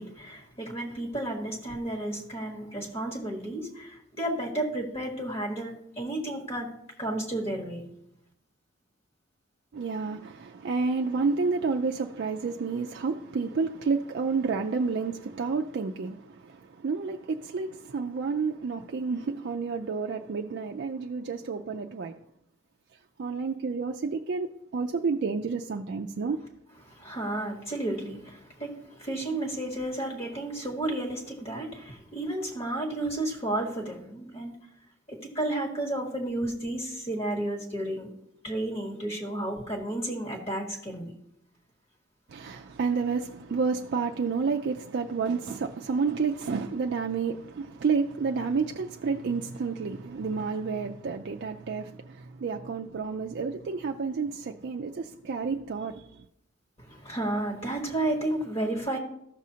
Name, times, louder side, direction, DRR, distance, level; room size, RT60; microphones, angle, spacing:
voice 1, 0.0-6.7 7.0-7.9 26.8-34.6 35.1-38.1 38.4-41.1 56.8-59.0, right 1 dB, 30° left, 1.3 m, -32 dB
voice 2, 9.7-22.2 23.2-26.4 42.3-56.1, right 4 dB, 55° right, 0.4 m, -30 dB
14.5 x 6.2 x 2.8 m
head